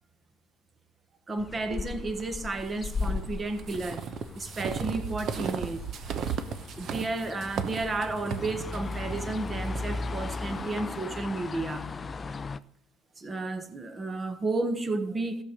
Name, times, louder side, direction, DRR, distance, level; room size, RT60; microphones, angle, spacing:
voice 1, 1.3-4.1 4.3-5.8 6.8-11.9 13.2-15.4, right 3 dB, 25° right, 1.3 m, -32 dB
sound 1, 1.4-12.6, left 4 dB, 25° left, 0.4 m, -37 dB
sound 2, 2.8-10.7, right 7 dB, 50° right, 0.9 m, -36 dB
14.0 x 6.7 x 5.3 m
supercardioid pair, 90°, 0 cm